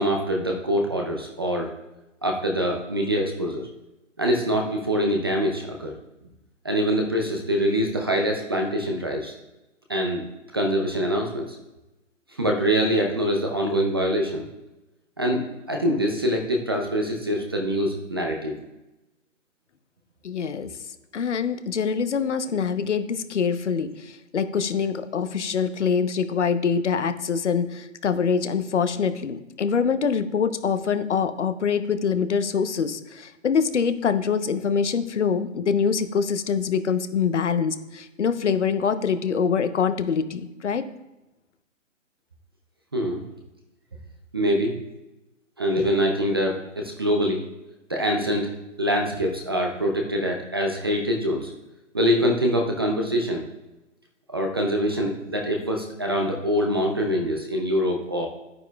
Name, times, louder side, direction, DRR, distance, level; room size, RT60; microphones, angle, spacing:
voice 1, 0.0-1.7 2.2-3.7 4.2-5.9 6.6-9.3 9.9-10.2 10.5-11.6 12.4-14.4 15.2-15.4 15.7-18.5 42.9-43.2 44.3-44.8 45.6-47.4 47.9-48.5 48.8-51.5 51.9-53.4 54.3-58.3, equal, 20° right, 2 dB, 0.5 m, -24 dB
voice 2, 20.2-20.7 21.1-40.8, left 6 dB, 65° left, 10 dB, 0.9 m, -24 dB
11.0 x 9.1 x 2.3 m, 1.0 s
figure-of-eight pair, 145°, 39 cm